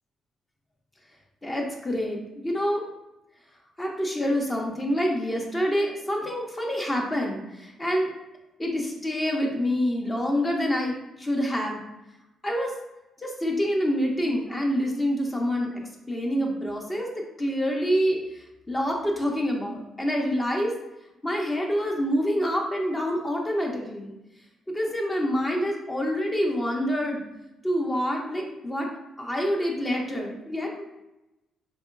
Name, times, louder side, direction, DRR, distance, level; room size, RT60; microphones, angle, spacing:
voice 1, 1.4-2.9 3.8-8.1 8.6-11.8 12.4-12.7 13.2-15.8 16.1-17.1 17.4-20.7 21.2-24.1 24.7-27.2 27.6-28.9 29.2-30.8, equal, 20° left, 0 dB, 0.7 m, -27 dB
3.5 x 2.8 x 2.5 m, 0.94 s
cardioid pair, 90°, 0 cm